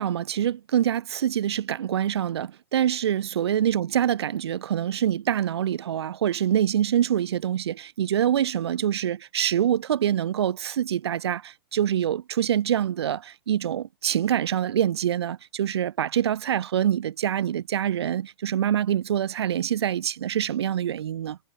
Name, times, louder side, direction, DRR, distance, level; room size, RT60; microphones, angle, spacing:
voice 1, 0.0-21.4, right 10 dB, 90° right, 0.9 m, -25 dB
hypercardioid pair, 130°, 13 cm